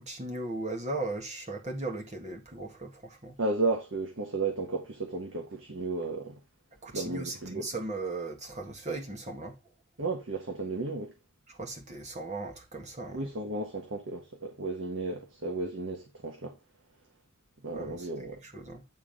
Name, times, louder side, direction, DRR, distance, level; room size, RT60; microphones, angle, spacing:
voice 1, 0.0-3.4 6.8-9.6 11.5-13.2 17.7-18.8, right 2 dB, 35° right, 1.8 m, -37 dB
voice 2, 3.4-6.4 6.9-7.7 10.0-11.1 13.1-16.6 17.6-18.4, right 3 dB, 70° right, 1.3 m, -33 dB
9.3 x 3.9 x 5.1 m
head